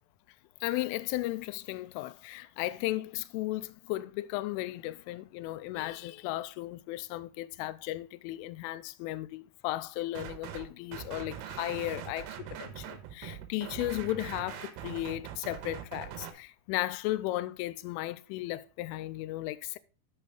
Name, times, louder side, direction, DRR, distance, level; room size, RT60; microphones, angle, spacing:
voice 1, 0.6-19.8, left 16 dB, 85° left, 2.9 m, -35 dB
sound 1, 10.2-10.7 10.9-16.3, right 9 dB, 85° right, 3.3 m, -42 dB
8.6 x 6.8 x 3.7 m
omnidirectional pair, 5.9 m